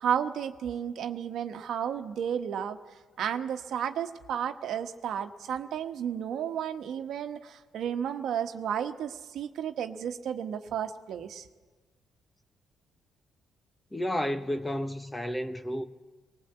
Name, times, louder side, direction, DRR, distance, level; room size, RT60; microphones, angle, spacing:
voice 1, 0.0-2.8 3.2-11.5, right 8 dB, 75° right, 1.2 m, -32 dB
voice 2, 13.9-15.8, equal, 15° left, 1.1 m, -31 dB
19.5 x 19.0 x 8.1 m
cardioid pair, 90°, 0 cm